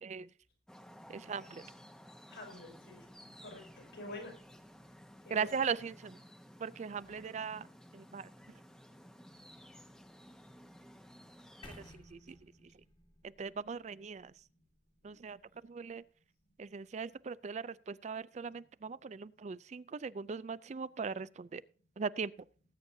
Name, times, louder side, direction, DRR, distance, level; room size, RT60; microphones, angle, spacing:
sound 1, 0.7-11.9, equal, 5° left, 0.9 m, -55 dB
voice 1, 1.1-1.6 5.3-6.2 6.6-7.7 7.9-8.3 12.1-12.2 13.4-14.3 15.0-16.0 16.6-21.6 22.0-22.3, right 5 dB, 40° right, 0.4 m, -39 dB
voice 2, 2.3-3.0 3.4-4.3 5.2-5.6 15.0-15.2, left 2 dB, 75° left, 5.9 m, -48 dB
sound 2, 11.6-15.6, left 1 dB, 30° left, 1.6 m, -58 dB
19.0 x 8.9 x 2.7 m
head